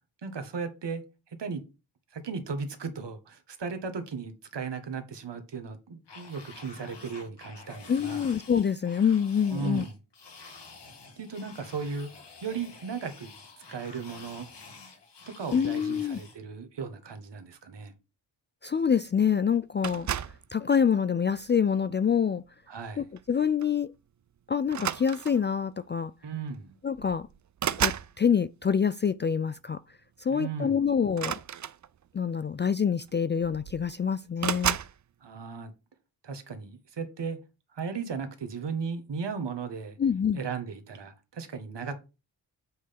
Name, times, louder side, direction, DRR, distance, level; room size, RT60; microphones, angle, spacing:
voice 1, 0.2-1.6 2.1-8.3 9.5-9.9 10.5-10.6 11.2-12.1 12.4-13.3 13.7-14.5 15.4-17.9 22.7-23.1 26.2-26.8 30.3-30.9 35.2-35.7 36.2-37.4 37.7-40.0 40.3-41.9, right 5 dB, 60° right, 1.8 m, -36 dB
sound 1, 6.1-16.4, left 4 dB, 60° left, 2.4 m, -49 dB
voice 2, 7.9-9.8 15.5-16.2 18.6-20.1 20.5-22.4 23.0-23.9 24.5-26.1 26.8-27.3 27.8-29.8 30.2-31.4 32.1-34.8 40.0-40.4, left 7 dB, 25° left, 0.4 m, -26 dB
sound 2, 19.8-20.5 21.3-21.7 23.2-23.3 23.6-23.8 24.7-25.5 26.5-26.6 26.9-28.1 31.1-32.2 33.1-33.2 33.4-33.9 34.4-35.0, right 9 dB, 40° right, 0.6 m, -32 dB
7.8 x 3.3 x 5.8 m
supercardioid pair, 40°, 47 cm